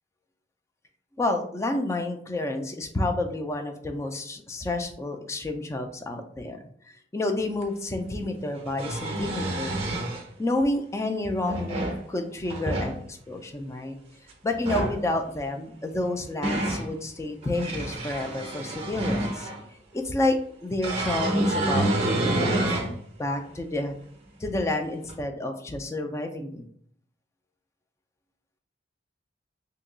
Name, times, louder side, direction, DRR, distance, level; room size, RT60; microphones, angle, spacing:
voice 1, 1.2-6.6 6.9-9.8 10.4-14.0 14.4-19.5 19.9-22.7 23.2-23.9 24.4-26.6, left 2 dB, 15° left, 5 dB, 0.3 m, -29 dB
sound 1, 7.6-7.7 8.6-10.2 11.2-12.0 12.4-12.9 14.5-15.0 15.9-16.9 17.4-19.6 20.8-22.9 23.5-23.6 25.1-25.2, right 1 dB, 35° right, 0.6 m, -28 dB
2.8 x 2.2 x 3.8 m, 0.63 s
head